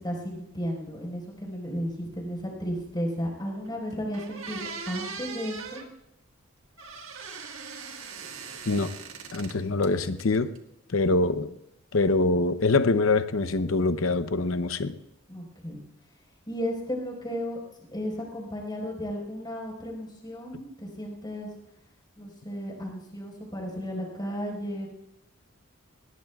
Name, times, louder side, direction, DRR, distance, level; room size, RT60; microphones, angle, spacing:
voice 1, 0.0-5.8 15.3-15.8 16.5-17.6 17.9-21.5 22.2-24.9, equal, 20° left, -1 dB, 4.6 m, -34 dB
sound 1, 3.6-3.7 4.1-5.9 6.8-9.6 9.8-10.6, right 5 dB, 75° right, 1.7 m, -40 dB
voice 2, 9.3-10.5 10.9-11.5 11.9-15.0, left 3 dB, 75° left, 12 dB, 0.8 m, -24 dB
21.0 x 19.0 x 2.4 m, 0.81 s
head